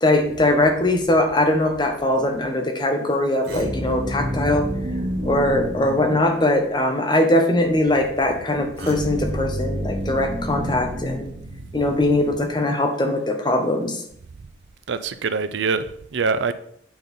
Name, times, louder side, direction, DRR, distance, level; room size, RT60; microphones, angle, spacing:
voice 1, 0.0-4.7 5.2-11.3 11.7-14.0, left 1 dB, 25° left, 0.9 m, -21 dB
sound 1, 3.4-6.8 8.8-12.0, equal, 55° right, 1.4 m, -29 dB
voice 2, 14.9-16.5, right 4 dB, 70° right, 0.5 m, -24 dB
8.8 x 3.9 x 5.3 m
head